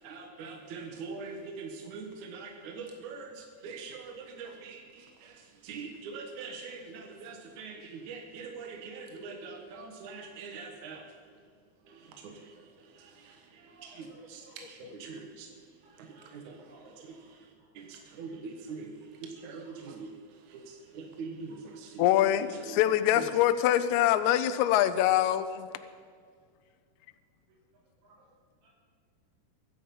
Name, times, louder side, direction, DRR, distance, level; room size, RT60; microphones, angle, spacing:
voice 1, 0.0-11.2 11.9-22.8 23.1-23.3, right 4 dB, 65° right, 3 dB, 2.6 m, -44 dB
voice 2, 13.7-14.6 15.8-16.2 16.7-17.0 28.0-28.2 28.6-28.8, right 2 dB, 80° right, -4 dB, 4.7 m, -58 dB
voice 3, 22.0-25.7, left 12 dB, 75° left, 11 dB, 1.9 m, -24 dB
23.5 x 8.6 x 5.5 m, 2.1 s
omnidirectional pair, 3.8 m